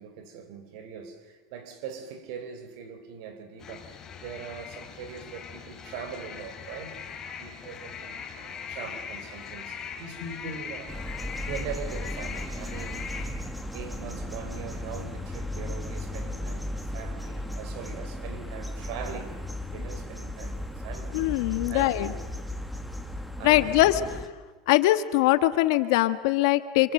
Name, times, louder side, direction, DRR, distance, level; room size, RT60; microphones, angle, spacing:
voice 1, 0.0-7.0 7.4-11.0 11.4-13.3 13.7-19.4 19.7-22.3 23.4-24.1, right 7 dB, 60° right, 3.9 m, -41 dB
sound 1, 3.6-13.3, left 6 dB, 20° left, 2.9 m, -40 dB
sound 2, 10.9-24.3, left 1 dB, ahead, 1.5 m, -35 dB
voice 2, 21.1-22.1 23.4-24.0 24.7-26.9, left 17 dB, 65° left, 1.5 m, -22 dB
27.0 x 27.0 x 7.9 m
supercardioid pair, 160°, 2 cm